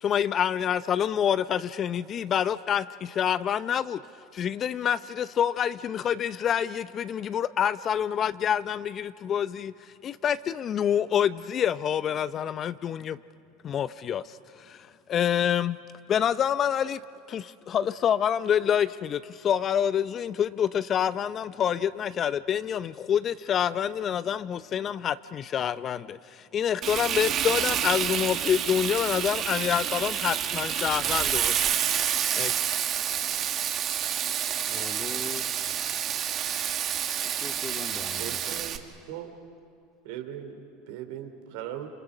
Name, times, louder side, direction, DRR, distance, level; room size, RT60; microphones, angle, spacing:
voice 1, 0.0-4.0 4.3-9.7 10.0-13.2 13.6-15.8 16.1-17.0 17.3-31.6 32.3-32.7, left 9 dB, 40° left, 0.6 m, -27 dB
Frying (food), 26.8-38.8, right 9 dB, 45° right, 1.7 m, -28 dB
voice 2, 34.5-35.7 37.2-38.7, left 4 dB, 25° left, 2.2 m, -41 dB
voice 3, 38.2-38.8 39.1-39.3 40.0-41.9, right 10 dB, 65° right, 2.8 m, -39 dB
28.5 x 27.0 x 6.1 m
hypercardioid pair, 80°, 0 cm